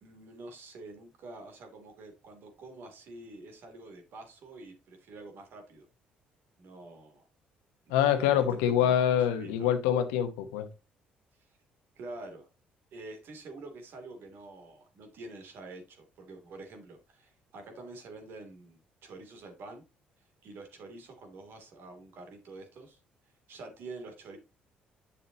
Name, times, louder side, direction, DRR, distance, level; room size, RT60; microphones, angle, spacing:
voice 1, 0.0-5.9 6.6-7.3 8.2-9.7 12.0-12.5 12.9-19.8 20.4-23.0 23.5-24.4, right 2 dB, 65° right, 2.8 m, -47 dB
voice 2, 7.9-10.7, left 10 dB, 90° left, 1.1 m, -25 dB
8.5 x 7.0 x 2.9 m
supercardioid pair, 65°, 4 cm